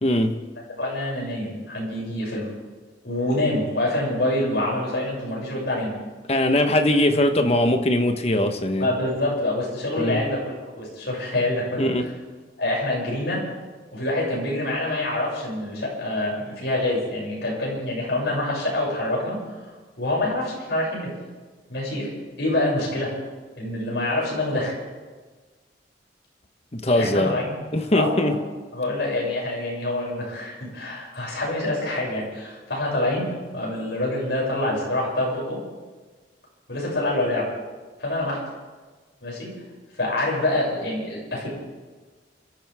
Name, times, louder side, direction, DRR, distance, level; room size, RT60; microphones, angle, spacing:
voice 1, 0.0-0.4 6.3-8.9 10.0-10.2 11.8-12.0 26.7-27.3 27.7-28.3, left 1 dB, 35° left, 6 dB, 1.3 m, -21 dB
voice 2, 0.8-2.5 3.0-5.9 8.8-11.9 12.6-13.4 13.9-19.4 20.0-21.1 21.7-22.1 22.4-23.1 23.6-24.7 26.9-27.5 27.9-28.3 28.7-35.6 36.7-37.5 38.0-38.4 39.2-39.5 40.0-41.5, left 1 dB, 70° left, -4 dB, 7.2 m, -26 dB
28.5 x 14.0 x 3.7 m, 1.3 s
head